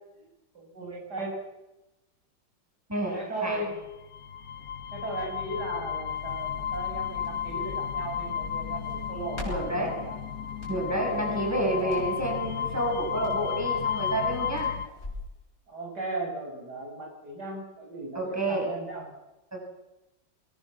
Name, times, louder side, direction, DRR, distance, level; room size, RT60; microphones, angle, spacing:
voice 1, 0.5-1.4 3.1-3.8 4.9-10.1 10.9-11.4 11.7-12.2 14.8-15.0 15.7-19.1, right 2 dB, 60° right, 0 dB, 6.3 m, -36 dB
voice 2, 2.9-3.6 9.5-10.0 10.7-14.8 18.1-18.7 19.5-19.6, right 1 dB, 10° right, 0 dB, 6.8 m, -29 dB
sound 1, 3.8-14.9, left 8 dB, 55° left, 1.4 m, -33 dB
Crackle, 6.1-15.3, left 1 dB, 35° left, 7.6 m, -45 dB
26.0 x 21.0 x 7.4 m, 0.99 s
omnidirectional pair, 2.0 m